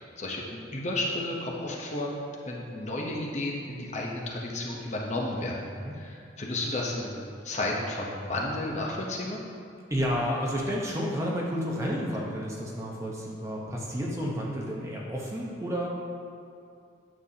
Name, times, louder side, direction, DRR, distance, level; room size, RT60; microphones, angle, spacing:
voice 1, 0.2-2.1 2.5-5.6 5.9-9.4, left 1 dB, 35° left, -2 dB, 0.8 m, -32 dB
voice 2, 5.4-5.9 9.9-15.9, equal, 15° right, -3 dB, 0.8 m, -31 dB
9.2 x 6.8 x 2.8 m, 2.4 s
head